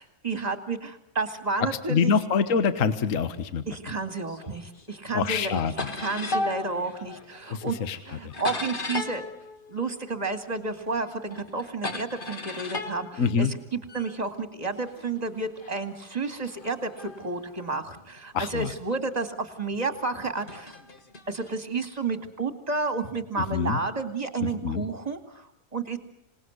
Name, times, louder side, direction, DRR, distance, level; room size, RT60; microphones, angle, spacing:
voice 1, 0.0-2.1 3.7-5.5 5.9-7.8 8.1-9.2 9.7-20.7 21.3-26.0, right 3 dB, 25° right, 8 dB, 2.4 m, -31 dB
voice 2, 1.7-3.6 5.1-5.7 7.5-8.3 13.2-13.5 18.3-18.7 23.4-23.8 24.4-24.8, left 6 dB, 55° left, 11 dB, 1.6 m, -26 dB
sound 1, 4.3-5.0 5.3-10.6 10.9-14.1 14.8-18.4 19.1-19.2 20.2-21.6, left 2 dB, 35° left, 1.7 m, -37 dB
26.5 x 19.5 x 9.6 m, 0.77 s
omnidirectional pair, 1.6 m